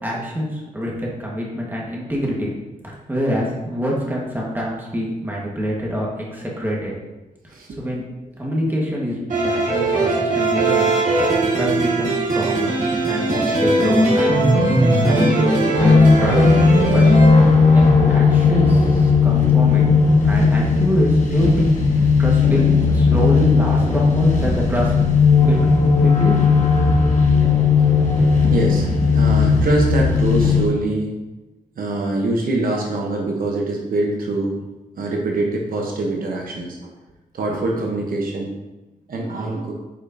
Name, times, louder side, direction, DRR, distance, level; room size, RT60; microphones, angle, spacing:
voice 1, 0.0-2.5 2.8-6.9 7.8-8.0 8.4-10.9 11.6-12.7 13.0-14.4 15.0-16.4 16.9-17.0 17.7-19.8 20.2-22.6 22.9-24.9 25.4-25.6 26.0-26.3, equal, 15° right, -3 dB, 1.6 m, -25 dB
sound 1, 9.3-17.3, right 2 dB, 60° right, 2.0 m, -19 dB
sound 2, 15.8-30.6, left 4 dB, 55° left, 1.2 m, -15 dB
voice 2, 28.5-28.9 29.1-31.1 31.8-34.6 35.0-36.8 37.3-38.5 39.1-39.7, right 2 dB, 80° right, 0 dB, 1.0 m, -24 dB
8.6 x 5.3 x 2.8 m, 1.0 s
wide cardioid pair, 125°, 15 cm